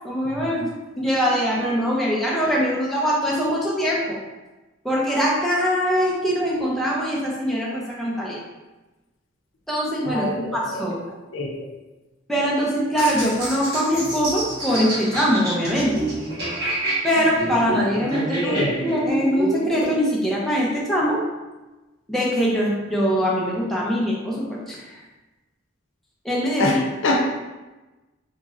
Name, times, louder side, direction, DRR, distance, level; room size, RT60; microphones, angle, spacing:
voice 1, 0.0-0.7 1.0-4.2 4.8-8.4 9.7-11.0 12.3-15.9 17.0-18.6 18.8-21.2 22.1-25.0 26.2-26.7, equal, ahead, -5 dB, 0.5 m, -22 dB
voice 2, 10.0-10.8 11.3-11.7 18.1-18.8 26.6-27.3, left 1 dB, 75° left, 0 dB, 0.6 m, -25 dB
sound 1, 13.0-19.9, right 1 dB, 50° right, 1.2 m, -28 dB
3.0 x 2.6 x 3.6 m, 1.1 s
head